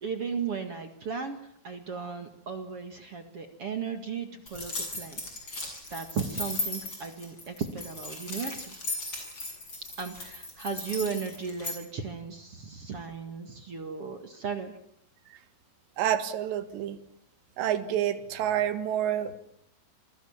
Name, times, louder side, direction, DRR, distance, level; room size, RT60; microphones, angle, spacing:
voice 1, 0.0-5.5 5.9-8.8 10.0-14.7, right 6 dB, 50° right, 7 dB, 1.9 m, -36 dB
sound 1, 4.5-11.8, left 2 dB, 25° left, 8.2 m, -37 dB
voice 2, 16.0-17.0 17.6-19.3, right 10 dB, 75° right, 10 dB, 3.9 m, -28 dB
28.0 x 21.5 x 7.3 m, 0.69 s
omnidirectional pair, 5.1 m